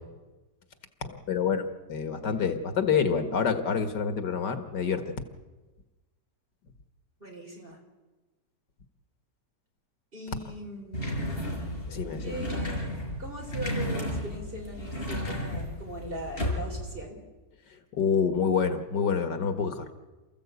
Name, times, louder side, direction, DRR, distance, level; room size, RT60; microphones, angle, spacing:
voice 1, 1.0-1.6 1.9-5.1 11.9-12.4 17.9-20.0, left 6 dB, 90° left, 8 dB, 2.3 m, -27 dB
voice 2, 7.2-7.8 10.1-11.2 12.0-17.2, equal, 30° right, 1 dB, 4.5 m, -40 dB
sound 1, 10.9-16.9, equal, 30° left, 5.4 m, -33 dB
28.5 x 15.0 x 8.3 m, 1.2 s
omnidirectional pair, 1.8 m